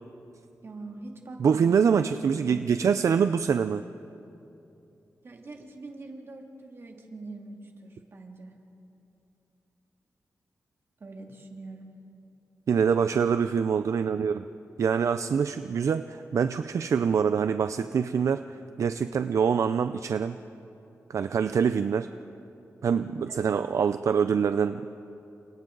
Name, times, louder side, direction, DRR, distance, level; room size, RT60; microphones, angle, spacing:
voice 1, 0.6-2.6 5.2-8.5 11.0-11.9 23.3-23.6, right 2 dB, 45° right, 1 dB, 2.6 m, -43 dB
voice 2, 1.4-3.8 12.7-14.4 14.8-18.4 18.8-20.4 21.1-22.1 22.8-24.8, right 6 dB, 70° right, 10 dB, 0.5 m, -25 dB
30.0 x 27.0 x 4.0 m, 2.8 s
wide cardioid pair, 120°, 5 cm